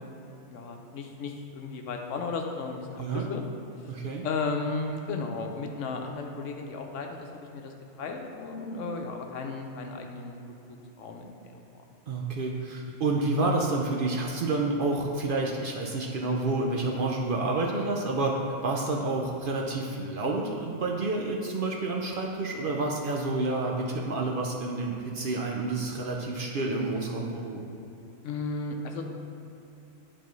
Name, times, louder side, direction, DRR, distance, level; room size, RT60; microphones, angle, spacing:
voice 1, 0.5-3.5 4.2-7.3 7.5-10.4 10.7-11.4 28.2-29.0, left 4 dB, 80° left, 3 dB, 1.0 m, -34 dB
voice 2, 3.9-4.2 12.1-27.6, right 2 dB, 60° right, 0 dB, 0.6 m, -29 dB
10.0 x 4.1 x 3.1 m, 2.8 s
omnidirectional pair, 1.3 m